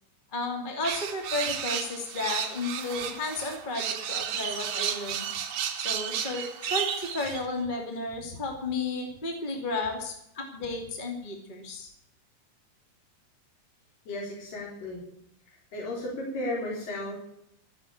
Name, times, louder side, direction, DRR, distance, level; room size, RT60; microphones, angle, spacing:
voice 1, 0.3-5.3 5.8-11.9, left 3 dB, 15° left, 2 dB, 2.3 m, -33 dB
sound 1, 0.8-7.4, right 8 dB, 65° right, 2.7 m, -33 dB
voice 2, 14.1-15.0 15.7-17.1, left 1 dB, 75° left, -4 dB, 5.7 m, -34 dB
14.5 x 8.0 x 8.6 m, 0.75 s
omnidirectional pair, 3.9 m